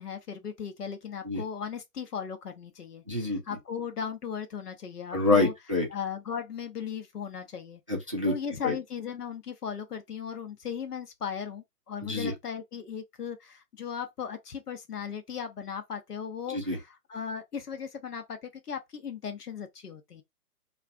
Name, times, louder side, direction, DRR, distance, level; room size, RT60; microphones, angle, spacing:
voice 1, 0.0-5.5 5.9-7.8 8.2-20.2, left 7 dB, 75° left, 0.8 m, -37 dB
voice 2, 3.1-3.4 5.1-5.9 7.9-8.3 8.6-8.7 12.0-12.3 16.5-16.8, left 2 dB, 25° right, 0.4 m, -26 dB
2.4 x 2.2 x 2.5 m
figure-of-eight pair, 135°, 47 cm